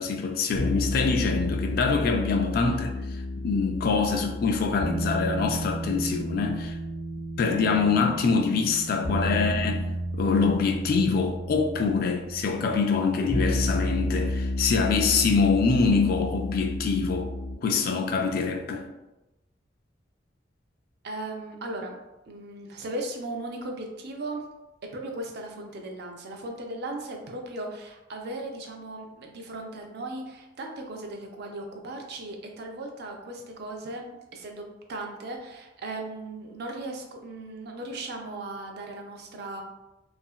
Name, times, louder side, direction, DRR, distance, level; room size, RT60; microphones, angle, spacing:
voice 1, 0.0-2.9 3.4-6.8 7.4-17.3 17.6-18.9, left 4 dB, 50° left, 0.3 m, -25 dB
sound 1, 0.5-17.5, left 1 dB, 90° left, 0.7 m, -31 dB
voice 2, 21.0-22.0 22.3-24.4 24.9-39.6, right 2 dB, 60° right, 0.4 m, -37 dB
2.8 x 2.5 x 2.3 m
head